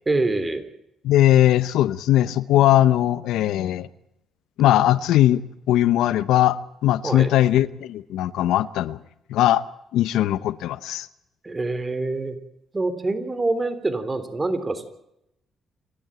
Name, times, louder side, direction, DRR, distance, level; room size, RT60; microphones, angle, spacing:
voice 1, 0.1-0.6 7.0-7.3 11.4-12.4 12.7-14.9, right 2 dB, 25° right, 3.5 m, -25 dB
voice 2, 1.0-3.9 4.6-9.0 9.3-9.6 9.9-11.1, left 13 dB, 90° left, 0.8 m, -19 dB
28.5 x 12.5 x 9.0 m
cardioid pair, 90°, 0 cm